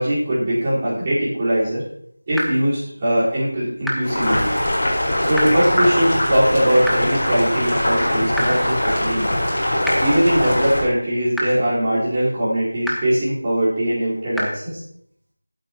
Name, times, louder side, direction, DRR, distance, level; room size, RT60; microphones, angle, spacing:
voice 1, 0.0-1.8 2.3-4.5 5.2-9.4 10.0-14.8, right 1 dB, 20° right, -9 dB, 4.4 m, -21 dB
sound 1, 2.3-2.4 3.8-3.9 5.3-5.4 6.8-6.9 8.3-8.4 9.8-9.9 11.3-11.4 12.8-12.9 14.3-14.4, equal, ahead, 0.6 m, -23 dB
Boiling, 4.0-10.8, left 1 dB, 40° left, 4.6 m, -21 dB
15.5 x 8.8 x 3.0 m, 0.68 s
figure-of-eight pair, 170°, 0 cm